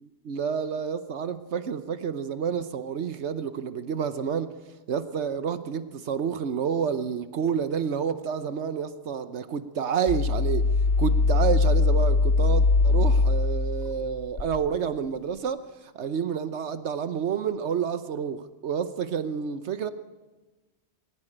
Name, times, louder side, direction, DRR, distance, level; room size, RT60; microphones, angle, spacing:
voice 1, 0.2-4.5 4.9-10.6 11.0-19.9, right 7 dB, 80° right, 11 dB, 1.2 m, -29 dB
sound 1, 10.1-14.6, left 3 dB, 60° left, 1.7 m, -22 dB
22.0 x 17.5 x 8.8 m, 1.2 s
omnidirectional pair, 1.1 m